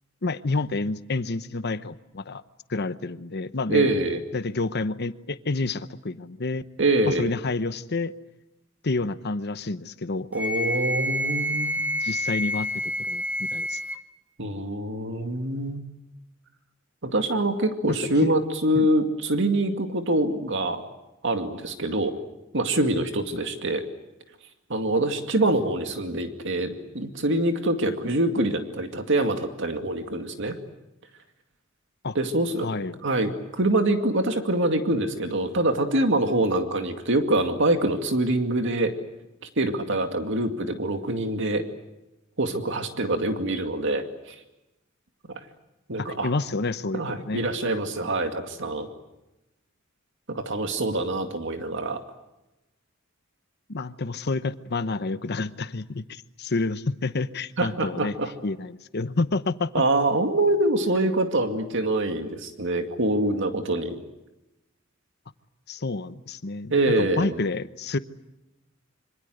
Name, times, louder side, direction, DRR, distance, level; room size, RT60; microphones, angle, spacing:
voice 1, 0.2-2.4 2.7-3.9 4.3-6.6 7.0-8.1 8.8-10.3 12.0-13.8 18.2-18.3 18.8-18.9 32.0-32.2 32.6-33.0 46.0-47.5 53.7-58.2 58.4-59.7 65.7-68.0, left 3 dB, 55° left, 13 dB, 0.9 m, -29 dB
voice 2, 3.7-4.2 6.8-7.3 10.3-11.8 14.4-15.8 17.0-20.8 21.2-22.1 22.5-23.8 24.7-30.6 32.1-32.7 33.0-38.9 39.6-41.6 42.4-44.4 45.9-46.3 46.9-48.9 50.3-52.0 57.6-58.3 59.7-64.0 66.7-67.4, right 1 dB, 65° right, 6 dB, 2.3 m, -25 dB
Wind instrument woodwind instrument, 10.4-14.0, equal, 10° right, 1.8 m, -28 dB
26.5 x 25.5 x 7.9 m, 0.97 s
head